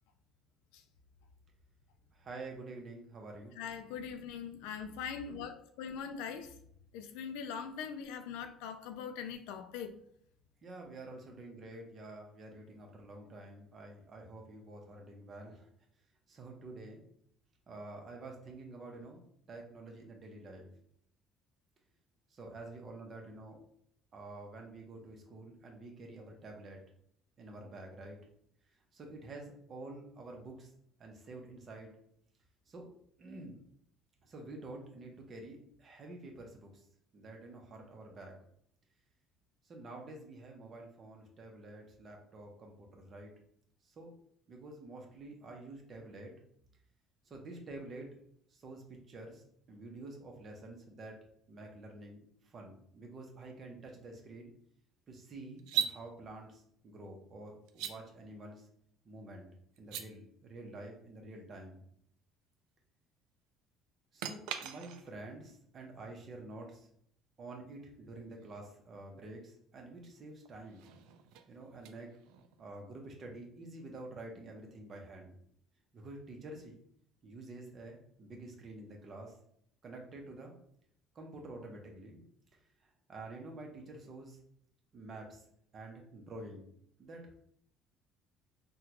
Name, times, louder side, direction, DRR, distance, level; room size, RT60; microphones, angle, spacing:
voice 1, 2.1-3.6 10.6-15.7 16.3-17.0 17.7-20.7 22.4-23.6 24.1-26.8 27.4-28.2 28.9-30.7 31.0-32.0 32.7-32.8 33.2-33.6 34.2-36.9 37.1-38.4 39.6-43.3 43.8-44.1 44.5-46.3 47.2-48.1 48.5-54.5 55.1-58.7 59.0-59.5 59.8-61.8 64.1-66.9 67.4-70.9 71.5-72.2 72.6-75.4 75.9-76.8 77.2-79.4 79.8-80.5 81.1-82.2 82.5-84.4 84.9-85.4 85.7-86.7 87.0-87.3, right 2 dB, 40° right, 0.9 m, -48 dB
voice 2, 3.6-6.5 6.9-10.0, left 7 dB, 90° left, 0.4 m, -41 dB
sound 1, 55.6-56.0 57.7-57.9 59.8-60.1 64.2-65.2 68.4-68.5 70.4-72.6, right 9 dB, 85° right, 0.3 m, -39 dB
3.7 x 2.3 x 2.9 m
cardioid pair, 105°, 0 cm